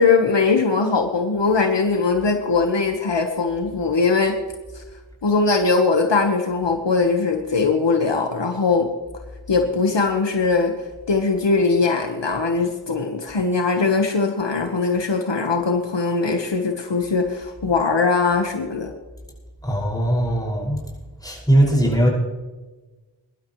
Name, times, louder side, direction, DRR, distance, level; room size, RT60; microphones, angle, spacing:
voice 1, 0.0-4.4 4.7-4.8 5.2-8.9 9.5-10.7 11.1-18.9, left 4 dB, 70° left, 4 dB, 1.3 m, -20 dB
voice 2, 19.6-20.8 21.2-22.1, right 1 dB, 10° left, -4 dB, 5.7 m, -19 dB
22.5 x 12.0 x 3.1 m, 1.2 s
wide cardioid pair, 70°, 45 cm